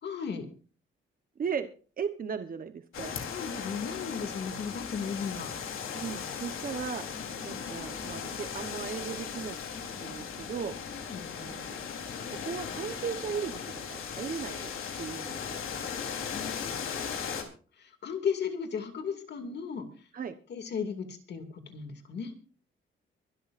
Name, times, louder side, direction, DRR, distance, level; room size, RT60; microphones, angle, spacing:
voice 1, 0.0-0.5 3.3-5.5 10.9-11.3 16.3-17.3 17.7-20.1 20.5-22.3, left 6 dB, 55° left, 6 dB, 2.5 m, -36 dB
voice 2, 1.4-1.7 2.0-3.2 5.9-7.1 7.4-9.6 10.0-10.9 11.4-11.8 12.3-14.7 15.0-15.6 20.1-20.3, right 6 dB, 45° right, 8 dB, 1.1 m, -37 dB
sound 1, 2.9-17.4, left 6 dB, 85° left, 3.9 m, -37 dB
24.0 x 12.5 x 2.6 m, 0.39 s
wide cardioid pair, 170°, 21 cm